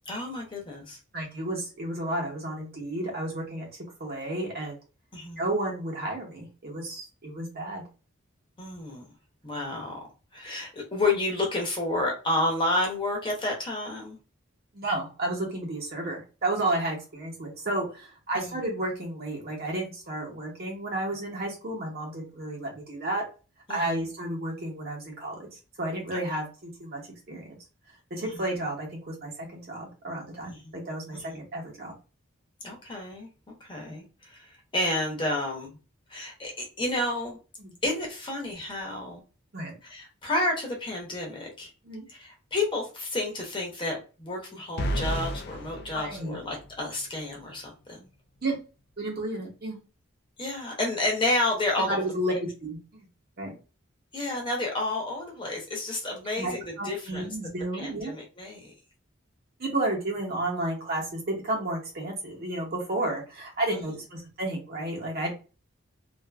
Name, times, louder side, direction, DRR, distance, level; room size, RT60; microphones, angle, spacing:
voice 1, 0.1-1.0 5.1-5.4 8.6-9.0 9.4-10.0 10.3-14.2 18.4-18.6 23.7-24.1 26.1-26.2 28.3-28.4 30.4-30.7 31.1-31.4 32.6-33.3 33.6-35.8 36.1-37.4 37.8-39.2 39.8-41.7 42.1-48.1 50.4-52.0 54.1-57.2 57.7-58.7 63.7-63.8, left 2 dB, 25° left, 0 dB, 0.7 m, -30 dB
voice 2, 1.1-3.7 4.0-4.8 5.4-7.8 14.7-23.2 23.7-27.0 27.3-27.6 28.1-31.9 33.8-33.9 37.6-37.7 39.5-39.7 41.8-42.0 44.5-44.6 45.9-46.4 48.4-48.6 49.0-49.8 51.9-52.4 52.6-53.0 53.4-53.5 56.4-58.1 59.6-65.3, right 1 dB, 50° right, -1 dB, 1.0 m, -32 dB
sound 1, 44.8-46.9, equal, 55° left, 0.3 m, -32 dB
2.5 x 2.5 x 2.2 m, 0.32 s
head